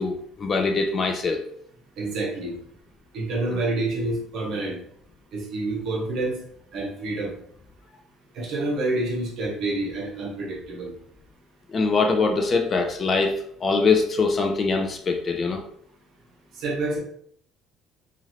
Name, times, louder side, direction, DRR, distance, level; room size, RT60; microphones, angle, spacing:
voice 1, 0.0-1.4 3.5-3.6 11.7-15.6, left 4 dB, 25° left, 4 dB, 0.3 m, -23 dB
voice 2, 2.0-2.5 3.1-4.8 5.3-6.4 6.7-7.3 8.3-10.9 16.6-17.0, right 2 dB, 50° right, -2 dB, 0.9 m, -28 dB
3.0 x 2.5 x 2.7 m, 0.66 s
cardioid pair, 160°, 0 cm